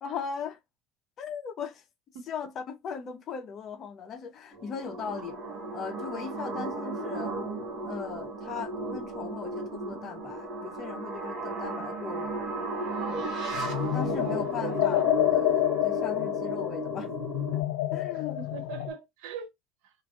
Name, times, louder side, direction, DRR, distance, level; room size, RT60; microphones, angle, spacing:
voice 1, 0.0-0.6 1.2-1.8 2.3-5.3 5.7-7.4 7.8-12.4 13.1-13.3 13.9-17.1 17.9-18.4, left 6 dB, 35° left, 0.7 m, -38 dB
sound 1, 4.5-17.6, right 2 dB, 45° right, 1.1 m, -35 dB
sound 2, 13.5-18.9, left 14 dB, 85° left, 0.3 m, -28 dB
voice 2, 14.1-15.0 18.1-19.5 19.8-19.9, right 8 dB, 70° right, 0.7 m, -41 dB
2.9 x 2.5 x 2.4 m
cardioid pair, 155°, 0 cm